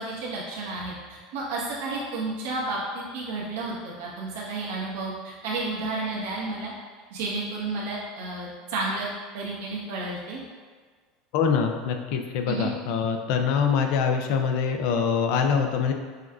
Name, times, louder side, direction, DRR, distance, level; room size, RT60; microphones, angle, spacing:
voice 1, 0.0-6.7 7.1-9.1 9.3-10.4 12.5-12.7, right 3 dB, 85° right, -5 dB, 1.0 m, -31 dB
voice 2, 11.3-15.9, left 6 dB, 50° left, 5 dB, 0.3 m, -24 dB
6.0 x 2.4 x 2.3 m, 1.5 s
cardioid pair, 180°, 0 cm